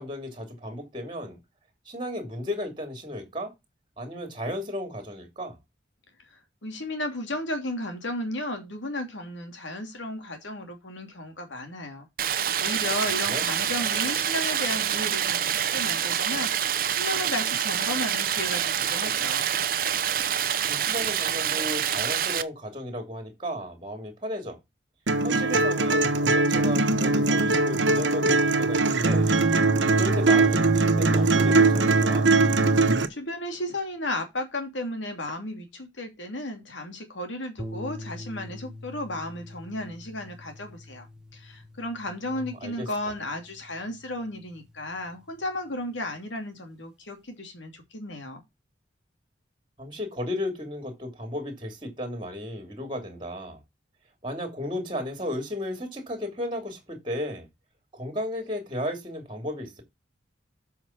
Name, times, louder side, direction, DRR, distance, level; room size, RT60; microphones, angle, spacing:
voice 1, 0.0-1.4 1.8-3.5 4.0-5.6 13.3-13.4 20.7-24.6 25.2-29.3 29.9-32.3 42.3-42.9 49.8-53.6 54.2-57.5 57.9-59.8, left 1 dB, 25° right, 3.0 m, -34 dB
voice 2, 6.3-12.1 12.6-19.5 33.1-41.1 41.3-48.4, left 1 dB, 80° left, 2.7 m, -34 dB
Stream, 12.2-22.4, right 9 dB, 50° right, 0.7 m, -26 dB
sound 1, 25.1-33.1, right 3 dB, 75° right, 1.2 m, -21 dB
sound 2, 37.6-46.0, left 1 dB, 5° right, 1.2 m, -45 dB
7.9 x 5.7 x 5.8 m
head